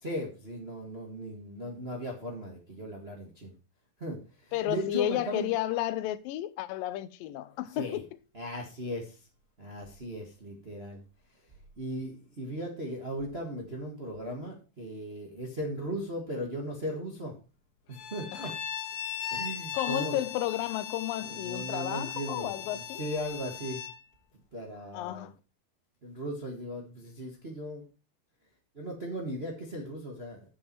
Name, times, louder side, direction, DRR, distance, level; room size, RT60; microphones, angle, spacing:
voice 1, 0.0-3.5 4.0-5.5 7.7-8.0 8.3-9.2 9.6-11.0 11.8-17.3 17.9-18.6 19.3-20.2 21.2-23.8 24.5-25.3 26.0-27.8 28.7-30.4, equal, 35° right, 1.0 m, -37 dB
voice 2, 4.5-8.1 18.3-18.5 19.7-23.0 24.9-25.3, left 13 dB, 85° left, 2.4 m, -32 dB
Bowed string instrument, 17.9-24.0, left 9 dB, 70° left, 2.6 m, -38 dB
8.6 x 7.2 x 4.6 m
omnidirectional pair, 4.0 m